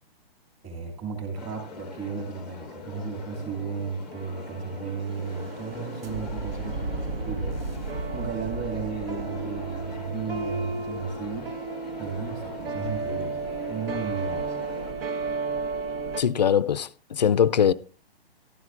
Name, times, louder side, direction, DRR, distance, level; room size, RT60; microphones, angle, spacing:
voice 1, 0.6-7.6 8.1-11.5 12.0-14.6, right 5 dB, 20° right, 2.4 m, -34 dB
sound 1, 1.4-14.9, left 4 dB, ahead, 0.6 m, -43 dB
sound 2, 3.4-16.2, right 3 dB, 70° right, 1.3 m, -33 dB
voice 2, 16.2-17.7, left 8 dB, 45° left, 0.4 m, -22 dB
14.0 x 12.5 x 2.5 m
hypercardioid pair, 175°, 30 cm